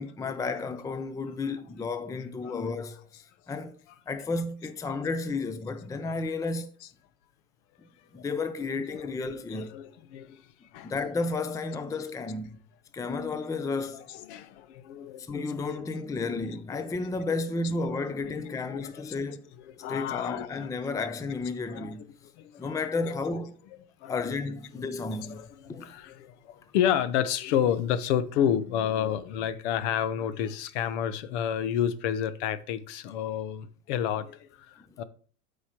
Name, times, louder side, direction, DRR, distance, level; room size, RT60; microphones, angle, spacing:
voice 1, 0.0-3.0 3.5-3.8 4.1-6.7 8.1-9.7 10.8-12.6 12.9-14.0 15.3-19.4 19.9-22.1 22.6-23.6 24.1-25.4 25.7-25.9, left 3 dB, 10° left, 0.6 m, -32 dB
voice 2, 0.9-1.6 2.4-2.6 3.1-3.2 3.9-4.0 6.1-6.2 6.8-6.9 8.2-8.3 8.7-10.4 10.7-10.9 11.9-12.1 14.1-17.7 18.2-20.7 21.7-23.2 23.6-24.4 24.7-35.0, left 9 dB, 55° left, 1.0 m, -32 dB
12.5 x 5.1 x 3.0 m
hypercardioid pair, 100°, 41 cm